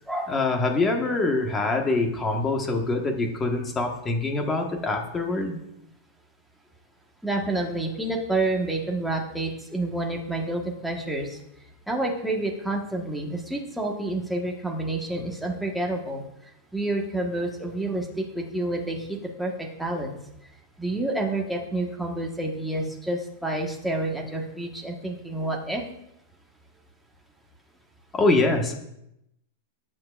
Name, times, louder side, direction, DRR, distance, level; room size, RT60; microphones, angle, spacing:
voice 1, 0.3-5.6 28.1-28.7, left 2 dB, 15° left, 3 dB, 1.5 m, -24 dB
voice 2, 7.2-11.4 11.9-16.2 16.7-20.2 20.8-25.8, right 2 dB, ahead, -1 dB, 1.5 m, -29 dB
18.0 x 7.6 x 2.5 m, 0.82 s
supercardioid pair, 155°, 0 cm